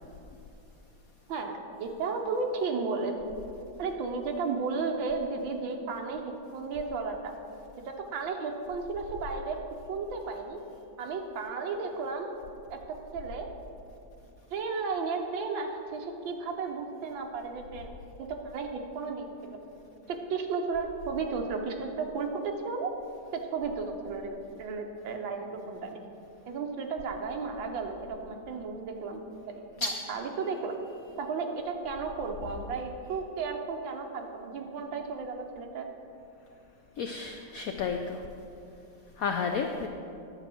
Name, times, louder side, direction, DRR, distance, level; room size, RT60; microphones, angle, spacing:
voice 1, 1.3-3.1 3.8-7.3 8.1-9.6 9.9-10.6 11.0-12.3 12.7-12.8 13.1-13.5 14.5-19.6 20.1-22.9 23.3-25.9 26.5-29.2 29.5-30.8 31.2-35.9, right 4 dB, 80° right, 3 dB, 1.6 m, -34 dB
voice 2, 37.0-38.2 39.2-39.9, left 5 dB, 85° left, 4 dB, 0.7 m, -31 dB
9.8 x 4.9 x 7.5 m, 2.7 s
omnidirectional pair, 2.1 m